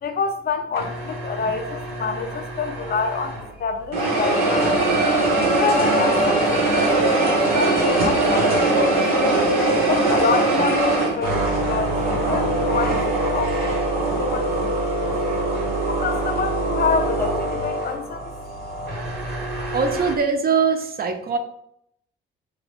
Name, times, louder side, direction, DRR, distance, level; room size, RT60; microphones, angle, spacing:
voice 1, 0.0-4.7 5.6-9.4 9.9-12.0 12.2-15.0 15.9-18.3, left 5 dB, 35° left, 6 dB, 0.4 m, -27 dB
sound 1, 0.7-3.5 3.9-20.1, right 2 dB, 70° right, 1.0 m, -22 dB
voice 2, 19.7-21.4, right 5 dB, 30° right, 5 dB, 0.5 m, -22 dB
3.2 x 2.7 x 4.0 m, 0.73 s
figure-of-eight pair, 45°, 30 cm